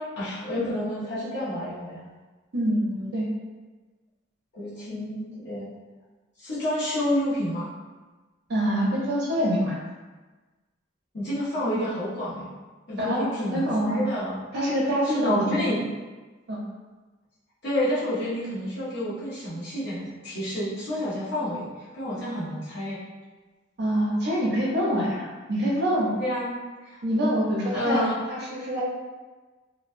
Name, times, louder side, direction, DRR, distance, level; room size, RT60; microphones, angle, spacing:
voice 1, 0.0-2.0 2.6-3.2 4.5-5.7 6.4-7.7 11.1-12.5 12.9-14.5 15.0-15.8 17.6-21.7 21.9-23.0 26.2-26.5 26.8-27.0 27.7-28.2, left 1 dB, 60° left, -11 dB, 1.0 m, -29 dB
voice 2, 8.5-9.8 13.0-13.3 13.5-14.0 14.5-15.6 16.5-16.6 23.8-26.1 27.0-28.0 28.3-28.8, equal, 60° right, -5 dB, 0.8 m, -25 dB
3.0 x 2.2 x 2.6 m, 1.3 s
head